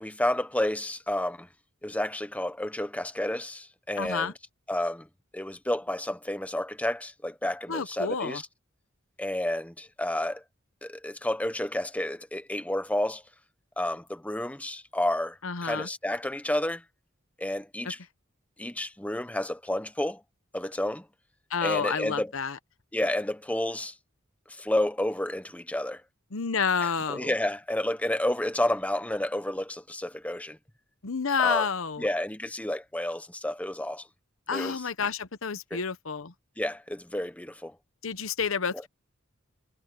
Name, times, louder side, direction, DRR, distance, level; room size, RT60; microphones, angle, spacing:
voice 1, 0.0-1.5 1.8-4.3 4.7-5.1 5.3-8.4 9.2-10.4 10.8-13.2 13.8-16.8 17.4-18.0 18.6-20.2 20.5-21.0 21.6-22.3 22.9-23.9 24.6-26.0 26.8-30.6 31.4-31.7 32.0-34.0 34.5-34.8 35.7-35.8 36.6-37.7, left 1 dB, 5° left, 0.9 m, -30 dB
voice 2, 4.0-4.3 7.7-8.4 15.4-15.9 21.5-22.6 26.3-27.3 31.0-32.1 34.5-36.3 38.0-38.9, left 5 dB, 80° left, 1.0 m, -29 dB
head